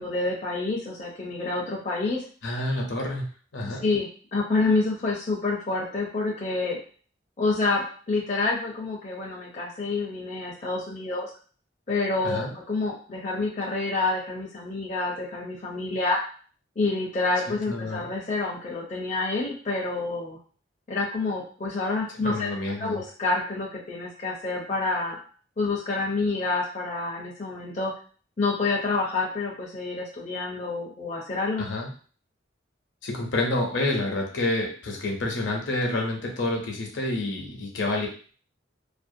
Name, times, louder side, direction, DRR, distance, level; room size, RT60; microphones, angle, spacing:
voice 1, 0.0-2.2 3.8-6.8 7.4-11.3 11.9-16.2 16.8-20.4 20.9-22.5 22.8-25.2 25.6-27.9 28.4-31.6, left 3 dB, 35° left, -3 dB, 0.5 m, -28 dB
voice 2, 2.4-3.2 3.5-3.8 12.2-12.5 17.7-18.1 22.2-23.0 31.6-31.9 33.0-38.1, left 2 dB, 75° left, 0 dB, 0.7 m, -28 dB
2.5 x 2.1 x 2.6 m, 0.41 s
head